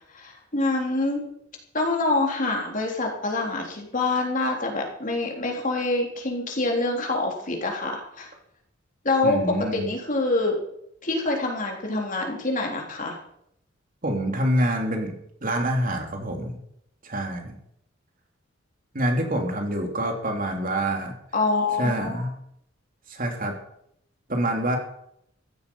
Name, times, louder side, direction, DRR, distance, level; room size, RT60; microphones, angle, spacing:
voice 1, 0.1-1.2 1.7-8.3 9.0-10.6 11.0-13.2 21.3-22.2, left 2 dB, 45° left, 0 dB, 3.6 m, -26 dB
voice 2, 9.2-9.9 14.0-15.1 15.4-16.6 17.0-17.6 18.9-21.2 21.8-22.3 23.1-23.5 24.3-24.8, right 1 dB, 45° right, 3 dB, 3.0 m, -26 dB
15.5 x 13.0 x 5.5 m, 0.74 s
head